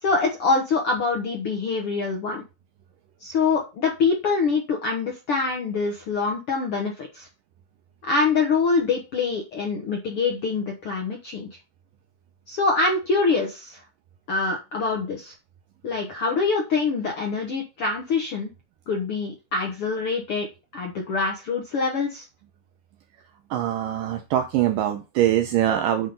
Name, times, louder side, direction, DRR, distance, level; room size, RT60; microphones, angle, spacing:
voice 1, 0.0-2.4 3.2-7.3 8.0-11.5 12.5-13.8 14.3-15.3 15.8-18.5 18.9-20.5 20.7-22.2, left 4 dB, 75° left, 1 dB, 1.3 m, -25 dB
voice 2, 23.5-26.1, right 11 dB, 90° right, 7 dB, 1.9 m, -23 dB
10.0 x 3.8 x 5.1 m, 0.27 s
omnidirectional pair, 4.6 m